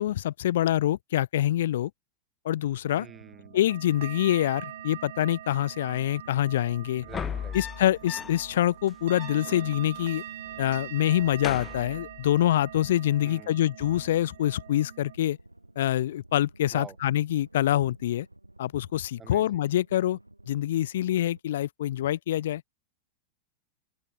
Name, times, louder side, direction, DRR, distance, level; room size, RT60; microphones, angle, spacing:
voice 1, 0.0-1.9 2.4-3.1 3.5-7.0 7.5-10.2 10.6-15.4 15.8-18.3 18.6-20.2 20.5-22.6, left 12 dB, 60° left, 0.6 m, -25 dB
sound 1, 2.8-15.2, right 13 dB, 60° right, 6.9 m, -43 dB
sound 2, 2.8-21.4, right 1 dB, 85° right, 2.4 m, -53 dB
voice 2, 3.0-3.7 7.0-7.6 13.2-13.7 16.7-17.0 19.2-19.6, right 6 dB, 20° right, 4.0 m, -46 dB
sound 3, 7.0-8.6 8.9-9.0 9.2-10.2 10.5-10.8 11.1-12.6 13.8-14.2, left 8 dB, 25° left, 0.7 m, -38 dB
open air
figure-of-eight pair, 90°, 0 cm